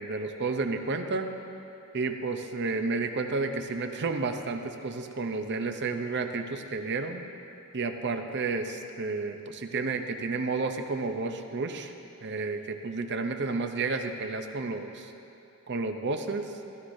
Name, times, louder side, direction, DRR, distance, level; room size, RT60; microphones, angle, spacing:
voice 1, 0.0-1.3 1.9-7.2 7.7-11.9 12.2-15.1 15.7-16.4, right 3 dB, 50° right, 6 dB, 0.7 m, -31 dB
16.0 x 13.0 x 2.7 m, 2.8 s
head